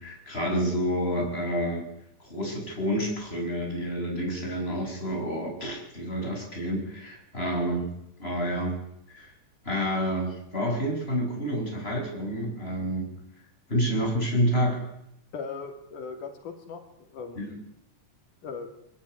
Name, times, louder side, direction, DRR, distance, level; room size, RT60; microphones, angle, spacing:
voice 1, 0.0-1.9 2.2-7.9 8.2-8.8 9.1-9.3 9.6-13.1 13.7-14.8 17.4-17.5, equal, 15° left, 0 dB, 7.8 m, -29 dB
voice 2, 15.3-16.8 17.1-17.5 18.4-18.7, left 5 dB, 85° left, 4 dB, 4.0 m, -38 dB
23.5 x 19.5 x 9.8 m, 0.79 s
omnidirectional pair, 3.5 m